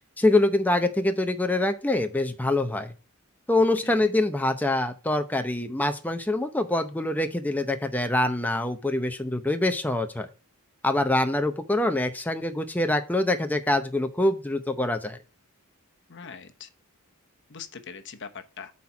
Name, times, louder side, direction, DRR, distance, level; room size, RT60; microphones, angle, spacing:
voice 1, 0.2-2.9 3.5-10.3 10.8-15.2, left 2 dB, 10° left, 0.6 m, -25 dB
voice 2, 16.1-16.7 17.5-18.7, left 6 dB, 55° left, 1.0 m, -42 dB
8.1 x 4.3 x 5.7 m
head